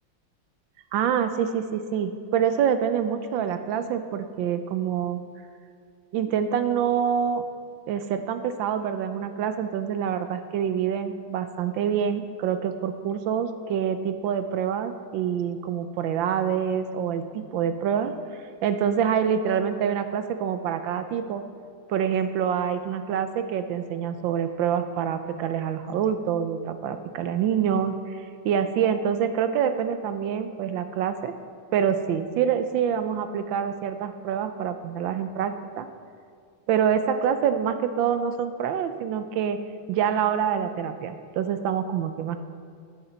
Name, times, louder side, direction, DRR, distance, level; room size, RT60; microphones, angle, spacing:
voice 1, 0.9-5.2 6.1-7.4 7.9-18.1 18.6-21.4 21.9-31.3 31.7-35.9 36.7-39.6 39.9-42.4, right 8 dB, 75° right, 9 dB, 1.3 m, -26 dB
16.5 x 6.7 x 4.4 m, 2.2 s
omnidirectional pair, 2.2 m